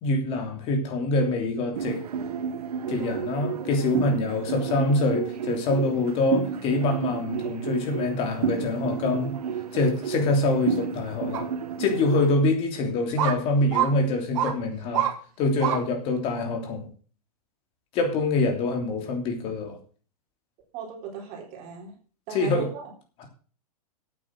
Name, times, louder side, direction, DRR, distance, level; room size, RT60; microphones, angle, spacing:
voice 1, 0.0-2.0 2.9-9.3 9.7-11.5 11.8-15.1 15.4-16.9 17.9-19.8 22.3-22.7 23.2-23.3, left 2 dB, 30° left, 3.1 m, -25 dB
sound 1, 1.8-12.3, right 7 dB, 85° right, 1.6 m, -31 dB
sound 2, 11.3-11.4 12.2-12.3 13.2-13.4 13.7-13.9 14.4-14.5 14.9-15.1 15.6-15.8 16.3-16.4, right 11 dB, 55° right, 2.2 m, -25 dB
voice 2, 20.7-21.9 22.3-22.9, right 5 dB, 35° right, 3.8 m, -37 dB
9.3 x 8.8 x 7.5 m
supercardioid pair, 160°, 19 cm